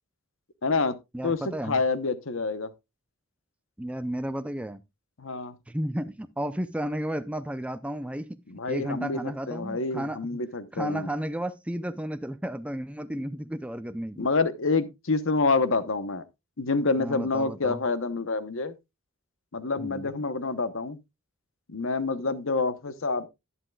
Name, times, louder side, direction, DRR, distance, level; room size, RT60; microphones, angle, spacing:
voice 1, 0.6-1.0 1.2-2.7 5.2-5.6 8.5-11.1 14.2-16.2 16.6-18.7 19.5-21.0 21.7-23.3, left 3 dB, 65° left, 1.0 m, -27 dB
voice 2, 1.1-1.8 3.8-4.8 5.7-8.4 8.7-10.4 10.7-14.3 17.0-17.8 19.8-20.1, right 1 dB, 5° right, 0.5 m, -33 dB
11.0 x 11.0 x 2.3 m
head